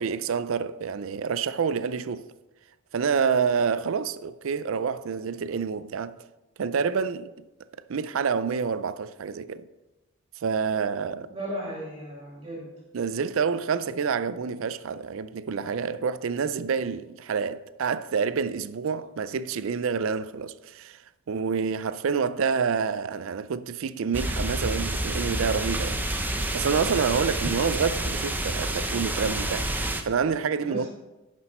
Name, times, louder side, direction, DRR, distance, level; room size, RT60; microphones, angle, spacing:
voice 1, 0.0-2.3 2.9-6.2 6.6-7.3 7.9-9.6 10.4-11.3 12.9-21.0 21.3-26.1 26.5-30.9, right 6 dB, 65° right, 0.4 m, -28 dB
voice 2, 11.3-12.7 30.6-30.9, equal, 25° right, 2.2 m, -35 dB
sound 1, 24.1-30.0, right 1 dB, 10° right, 0.6 m, -29 dB
9.8 x 6.1 x 4.3 m
head